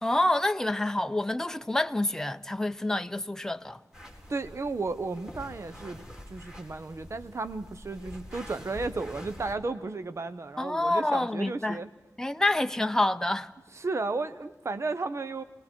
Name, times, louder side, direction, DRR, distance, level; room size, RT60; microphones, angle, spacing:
voice 1, 0.0-3.8 10.6-11.8 12.2-13.5, left 1 dB, 10° left, 0.7 m, -27 dB
sound 1, 3.9-9.5, equal, 10° right, 4.0 m, -46 dB
voice 2, 4.3-11.9 13.7-15.4, right 3 dB, 50° right, 0.9 m, -34 dB
28.0 x 20.5 x 4.5 m
wide cardioid pair, 70°, 6 cm